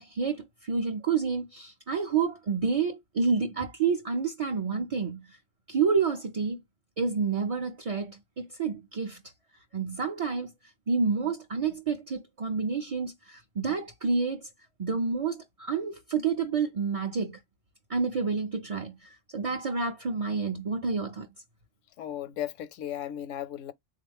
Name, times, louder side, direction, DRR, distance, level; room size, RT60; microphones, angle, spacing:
voice 1, 0.0-5.4 5.7-6.6 7.0-9.2 9.7-10.5 10.9-14.5 14.8-17.4 17.9-21.3, right 5 dB, 45° right, 0.4 m, -29 dB
voice 2, 22.0-23.7, left 11 dB, 85° left, 0.9 m, -35 dB
3.7 x 2.4 x 3.4 m
omnidirectional pair, 1.3 m